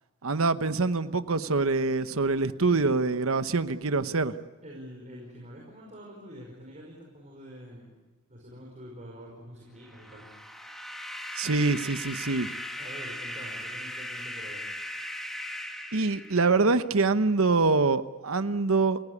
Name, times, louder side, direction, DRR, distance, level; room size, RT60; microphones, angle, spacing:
voice 1, 0.2-4.3 11.4-12.5 15.9-19.0, right 3 dB, 70° right, 12 dB, 1.0 m, -25 dB
voice 2, 4.6-7.9 8.3-10.3 12.8-14.6, equal, 35° right, -2 dB, 5.1 m, -46 dB
sound 1, 9.8-16.8, left 1 dB, ahead, 2.0 m, -38 dB
30.0 x 16.0 x 8.5 m, 1.2 s
head